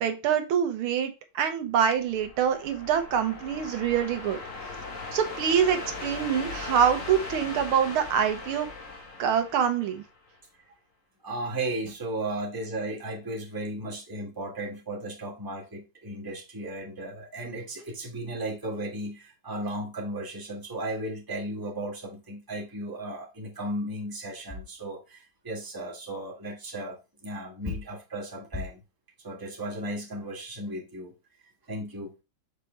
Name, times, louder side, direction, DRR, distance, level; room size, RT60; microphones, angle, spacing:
voice 1, 0.0-4.4 5.1-8.7 9.2-10.0, right 8 dB, 80° right, 1.7 m, -25 dB
sound 1, 1.9-10.3, left 3 dB, 40° left, 1.5 m, -39 dB
voice 2, 11.2-28.8 29.2-31.1 31.7-32.1, right 1 dB, 10° right, 1.3 m, -35 dB
6.5 x 4.7 x 3.2 m
omnidirectional pair, 2.4 m